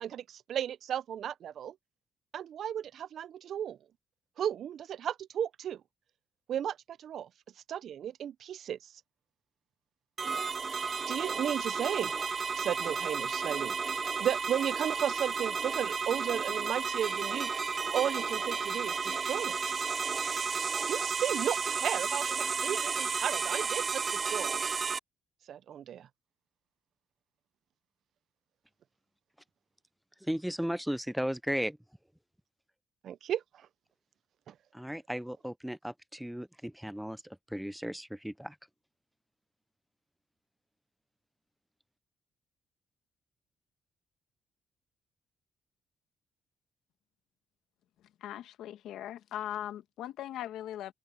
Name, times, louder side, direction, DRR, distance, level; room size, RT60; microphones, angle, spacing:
voice 1, 0.0-1.8 2.3-3.8 4.4-5.8 6.5-7.3 7.7-8.8 10.8-12.1 12.5-13.8 14.2-17.5 17.9-19.5 20.9-24.6 25.5-26.1 33.0-33.7 34.5-34.6, right 10 dB, 65° right, 0.4 m, -34 dB
sound 1, 10.2-25.0, right 5 dB, 40° right, 1.5 m, -32 dB
voice 2, 30.2-31.8 34.7-38.6, equal, 5° right, 0.4 m, -35 dB
voice 3, 48.2-50.9, left 12 dB, 85° left, 1.6 m, -39 dB
cardioid pair, 90°, 0 cm